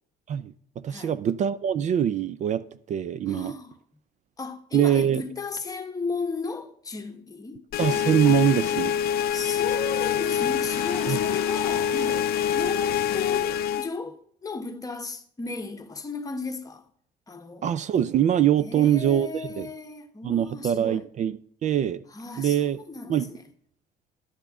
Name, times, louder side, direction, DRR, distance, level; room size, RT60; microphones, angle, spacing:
voice 1, 0.3-3.5 4.7-5.2 7.8-9.0 11.1-11.2 17.6-19.7 20.2-22.0 22.4-22.8 23.1-23.3, right 10 dB, 45° right, 0.4 m, -24 dB
voice 2, 3.3-3.7 4.4-7.6 8.2-8.5 9.3-16.9 17.3-17.7 18.6-21.0 22.1-23.5, left 4 dB, 20° left, 1.1 m, -35 dB
sound 1, 7.7-13.9, left 9 dB, 65° left, 0.5 m, -25 dB
Fire Truck w-Siren & Air Horn, 7.8-12.9, right 2 dB, 25° right, 1.9 m, -45 dB
11.5 x 8.0 x 3.7 m
cardioid pair, 110°, 17 cm